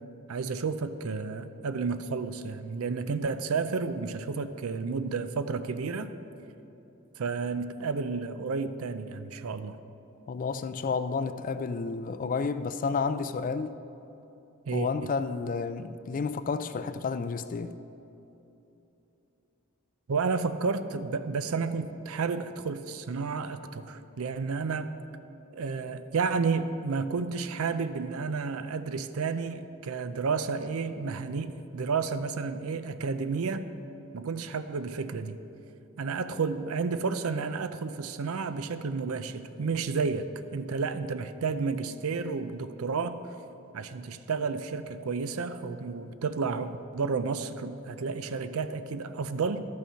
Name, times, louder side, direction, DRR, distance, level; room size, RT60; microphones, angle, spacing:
voice 1, 0.3-6.1 7.2-9.8 14.7-15.1 20.1-24.9 25.5-33.7 34.1-35.4 36.0-40.3 40.5-43.2 43.7-49.6, right 4 dB, 75° right, 11 dB, 0.5 m, -31 dB
voice 2, 10.3-13.7 14.7-17.7, left 5 dB, 40° left, 12 dB, 0.3 m, -31 dB
12.5 x 6.4 x 5.7 m, 3.0 s
head